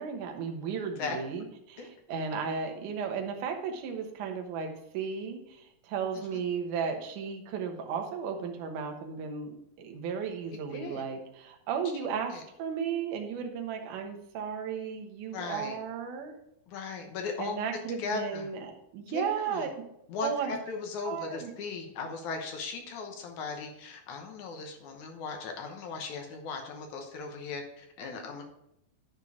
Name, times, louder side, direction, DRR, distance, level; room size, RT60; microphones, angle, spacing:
voice 1, 0.0-16.3 17.4-19.7 20.2-20.5 21.0-21.5, right 6 dB, 65° right, 3 dB, 2.3 m, -35 dB
voice 2, 10.5-11.0 12.3-12.4 15.3-15.8 16.7-17.5 18.0-18.5 19.1-19.7 20.1-28.4, left 4 dB, 65° left, 3 dB, 2.1 m, -38 dB
10.5 x 4.5 x 4.8 m, 0.79 s
omnidirectional pair, 4.4 m